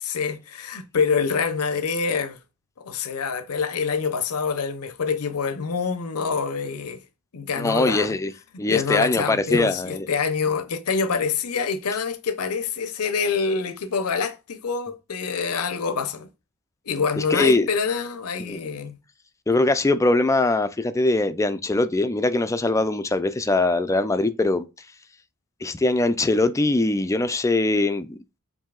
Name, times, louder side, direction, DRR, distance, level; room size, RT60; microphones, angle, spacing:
voice 1, 0.0-2.4 2.8-7.0 7.3-8.2 8.7-16.3 16.9-19.0, left 5 dB, 80° left, 0.7 m, -26 dB
voice 2, 7.6-8.3 8.6-10.1 17.2-17.7 18.4-18.6 19.5-24.7 25.6-28.2, left 2 dB, 15° left, 0.4 m, -22 dB
7.2 x 2.7 x 2.3 m
head